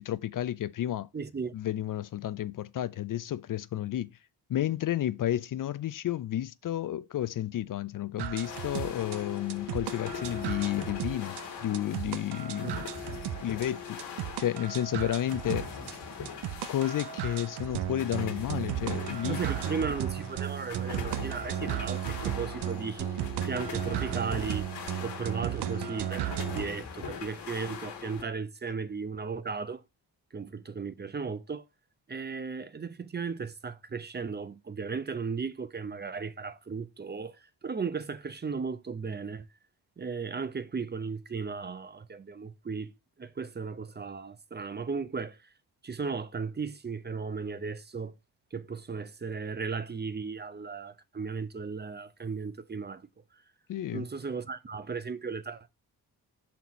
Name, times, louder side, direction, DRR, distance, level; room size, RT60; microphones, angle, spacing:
voice 1, 0.0-1.1 1.5-4.1 4.5-12.9 13.4-14.0 14.4-15.7 16.7-19.4 53.7-54.1, left 12 dB, 55° left, 0.5 m, -31 dB
voice 2, 1.1-1.5 12.6-12.8 19.3-23.1 23.4-24.7 25.0-29.8 30.3-31.6 32.1-39.5 40.0-42.9 43.2-45.5 45.8-48.1 48.5-53.0 53.9-55.7, right 5 dB, 25° right, 0.6 m, -36 dB
sound 1, 8.2-26.6, right 12 dB, 90° right, 0.5 m, -35 dB
sound 2, 8.4-28.2, left 7 dB, 85° left, 1.5 m, -41 dB
5.9 x 4.2 x 4.1 m
cardioid pair, 80°, 40 cm